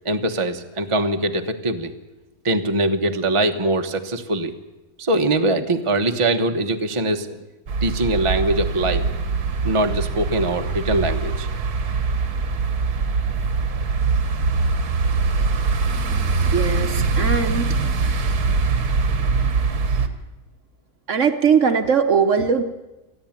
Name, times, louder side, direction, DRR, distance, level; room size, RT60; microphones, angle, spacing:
voice 1, 0.0-1.9 2.4-4.5 5.0-7.4 7.8-9.1 9.6-11.5, right 2 dB, 25° right, 5 dB, 1.0 m, -22 dB
sound 1, 7.7-20.1, right 4 dB, 80° right, 1.8 m, -22 dB
voice 2, 16.4-17.7 21.1-22.6, right 6 dB, 55° right, 8 dB, 1.2 m, -20 dB
28.0 x 10.5 x 9.0 m, 1.0 s
omnidirectional pair, 1.6 m